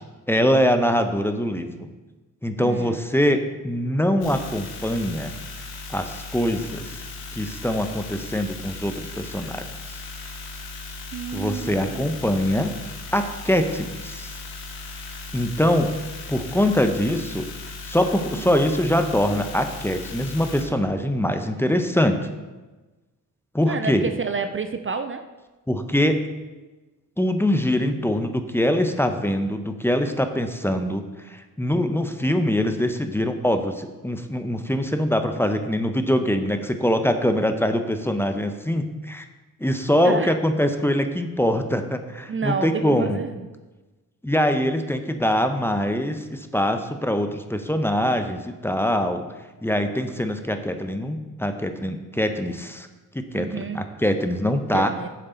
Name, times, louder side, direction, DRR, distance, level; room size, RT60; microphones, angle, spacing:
voice 1, 0.3-1.9 2.4-5.3 5.9-6.9 7.3-9.6 11.3-12.7 13.1-14.3 15.3-15.9 16.3-17.5 17.8-22.2 23.5-24.1 25.7-26.3 27.2-39.2 39.6-43.2 44.2-49.3 49.6-52.9 53.1-54.9, equal, 5° left, 7 dB, 0.9 m, -23 dB
voice 2, 2.6-3.0 11.1-12.1 18.3-18.5 23.7-25.2 40.0-40.4 42.3-43.3 53.3-53.8 54.7-55.1, right 5 dB, 35° right, 8 dB, 0.6 m, -29 dB
sound 1, 4.2-20.6, left 3 dB, 90° left, 1.6 m, -37 dB
11.0 x 7.6 x 4.0 m, 1.2 s
cardioid pair, 65°, 36 cm